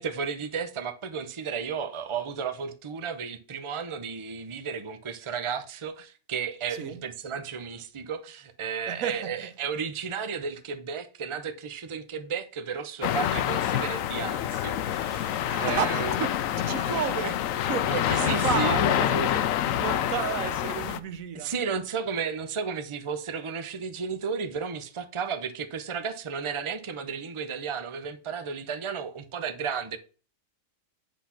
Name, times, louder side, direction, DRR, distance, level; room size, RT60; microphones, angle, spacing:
voice 1, 0.0-16.2 17.9-18.8 19.3-19.4 21.3-30.0, right 6 dB, 30° right, 0.7 m, -33 dB
voice 2, 6.7-7.0 8.9-9.5 15.5-21.5, right 9 dB, 80° right, 1.2 m, -33 dB
sound 1, 13.0-21.0, left 11 dB, 75° left, 1.0 m, -27 dB
8.3 x 4.1 x 5.8 m
omnidirectional pair, 1.4 m